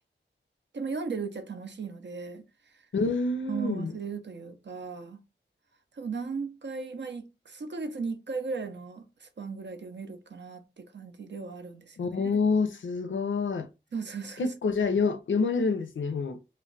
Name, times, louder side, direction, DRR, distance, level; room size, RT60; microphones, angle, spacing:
voice 1, 0.7-2.4 3.5-5.2 5.9-12.3 13.9-14.4, right 4 dB, 65° right, 0.5 m, -37 dB
voice 2, 2.9-4.0 12.0-13.7 14.4-16.4, left 4 dB, 80° left, 0.4 m, -27 dB
2.2 x 2.1 x 3.8 m
wide cardioid pair, 50°, 20 cm